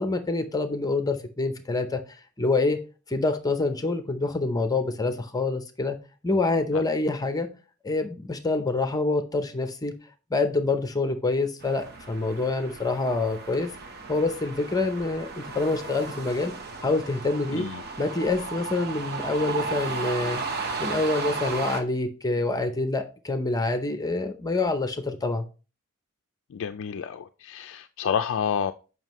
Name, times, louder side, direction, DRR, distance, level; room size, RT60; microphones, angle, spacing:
voice 1, 0.0-2.0 2.4-2.8 3.1-6.0 6.2-7.5 7.8-9.9 10.3-13.7 14.1-16.5 16.8-17.6 18.0-20.4 20.8-25.5, left 3 dB, 15° left, 0.7 m, -26 dB
sound 1, 11.6-21.8, right 4 dB, 45° right, 1.0 m, -35 dB
voice 2, 17.5-17.8 26.5-28.7, left 7 dB, 60° left, 0.4 m, -29 dB
7.3 x 5.8 x 3.0 m
head